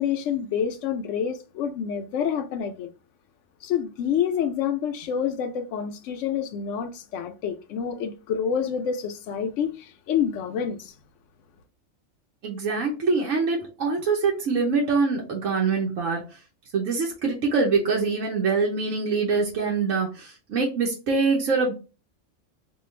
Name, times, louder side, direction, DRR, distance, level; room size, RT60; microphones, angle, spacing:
voice 1, 0.0-2.9 3.6-10.9, left 8 dB, 75° left, 0.9 m, -28 dB
voice 2, 12.4-16.2 16.7-21.7, right 4 dB, 85° right, 1.2 m, -24 dB
5.3 x 2.3 x 3.1 m
omnidirectional pair, 1.3 m